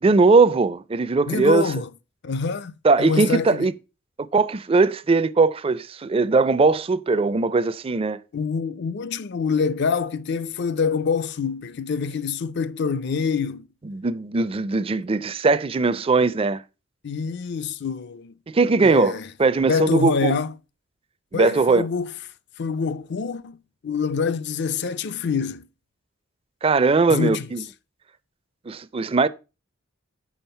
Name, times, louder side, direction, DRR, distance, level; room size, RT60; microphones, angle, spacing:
voice 1, 0.0-1.7 2.8-3.7 4.2-8.2 13.8-16.6 18.5-20.4 21.3-21.8 26.6-27.6 28.7-29.3, right 3 dB, 25° right, 0.4 m, -20 dB
voice 2, 1.3-1.9 2.2-2.7 3.0-3.7 8.3-13.7 17.0-18.3 18.8-19.3 19.7-20.5 21.3-22.1 22.6-23.6 23.8-25.7 27.1-27.5, left 5 dB, 55° left, 0.5 m, -25 dB
7.2 x 5.9 x 5.5 m
head